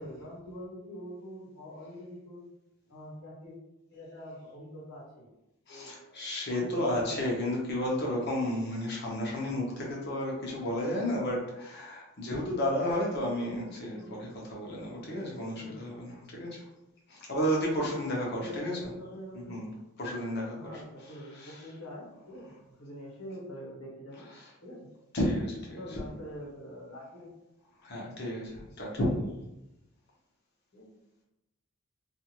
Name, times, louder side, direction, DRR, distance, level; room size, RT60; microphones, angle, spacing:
voice 1, 0.0-2.5 2.9-3.5 3.9-5.3 5.7-6.2 6.5-7.4 13.9-14.3 15.6-15.8 17.2-17.3 18.3-19.6 20.6-24.3 24.6-24.9 25.7-27.3 30.7-30.9, equal, 70° left, -5 dB, 1.1 m, -45 dB
voice 2, 5.7-16.6 17.1-18.8 19.5-19.7 20.0-20.8 21.3-21.5 24.4-24.5 25.1-26.0 27.8-29.1, equal, 50° left, -3 dB, 0.8 m, -32 dB
2.5 x 2.4 x 2.9 m, 0.92 s
head